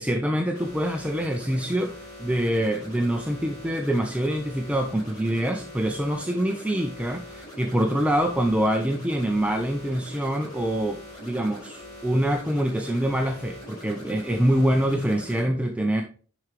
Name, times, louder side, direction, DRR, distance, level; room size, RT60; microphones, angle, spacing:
voice 1, 0.0-16.0, right 1 dB, 5° right, 3 dB, 0.5 m, -25 dB
sound 1, 0.5-15.4, equal, 20° left, 4.3 m, -43 dB
10.5 x 4.8 x 3.1 m, 0.40 s
head